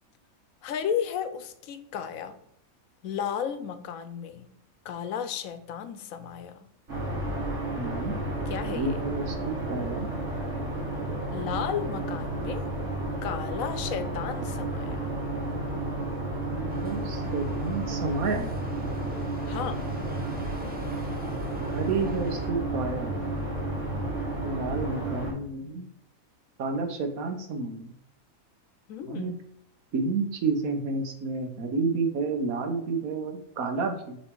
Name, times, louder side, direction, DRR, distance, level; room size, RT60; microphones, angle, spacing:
voice 1, 0.6-2.4 3.0-4.5 4.8-6.7 8.5-9.0 11.3-12.6 13.2-15.0 19.5-19.8 28.9-29.5, left 8 dB, 70° left, 10 dB, 1.1 m, -33 dB
sound 1, 6.9-25.3, right 2 dB, 55° right, 2.5 m, -32 dB
voice 2, 7.7-8.1 8.6-10.1 16.4-18.5 21.7-23.1 24.4-25.9 26.6-27.9 29.1-29.3 29.9-34.2, right 4 dB, 75° right, 5 dB, 1.4 m, -30 dB
sound 2, 16.7-22.5, right 1 dB, 5° right, 0.9 m, -42 dB
7.1 x 3.2 x 4.6 m, 0.74 s
omnidirectional pair, 1.5 m